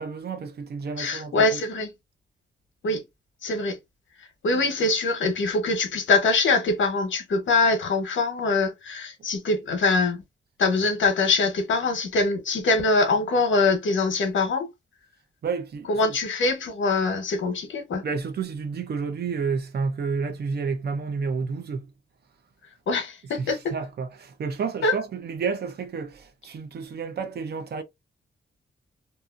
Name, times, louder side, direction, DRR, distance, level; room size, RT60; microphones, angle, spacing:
voice 1, 0.0-1.6 15.4-16.2 18.0-21.9 23.4-27.8, right 5 dB, 55° right, 0.6 m, -30 dB
voice 2, 1.0-1.9 2.8-3.0 3.4-3.8 4.4-10.2 10.6-14.7 15.9-18.0 22.9-23.7 24.8-24.9, left 3 dB, 80° left, 1.0 m, -23 dB
2.7 x 2.6 x 2.4 m
wide cardioid pair, 125°, 20 cm